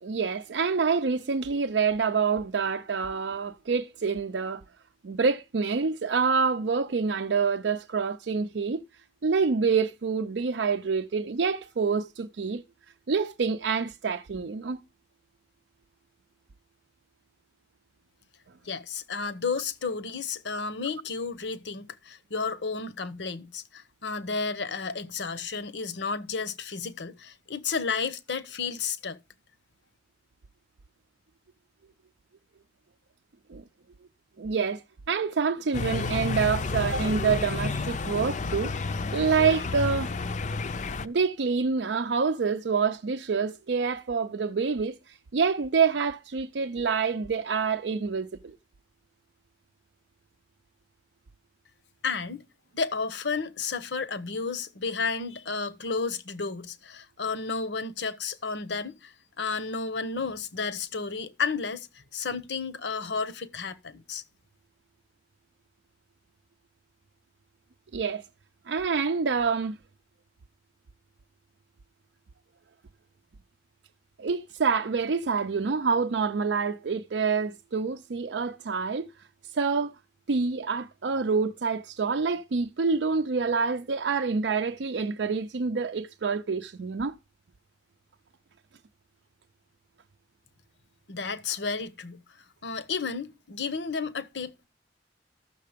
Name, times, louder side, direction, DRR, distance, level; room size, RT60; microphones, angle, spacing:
voice 1, 0.0-4.6 5.0-12.6 13.1-14.8 33.5-33.6 34.4-38.7 39.1-40.2 41.0-48.6 67.9-68.2 68.7-69.8 74.2-79.1 79.4-80.0 80.3-87.2, right 5 dB, 70° right, 0.5 m, -27 dB
voice 2, 18.6-29.2 52.0-52.5 52.7-61.9 62.1-64.2 91.1-92.2 92.6-94.7, left 5 dB, 70° left, 1.0 m, -32 dB
sound 1, 35.7-41.1, left 3 dB, 40° left, 0.5 m, -30 dB
13.5 x 6.6 x 5.1 m
head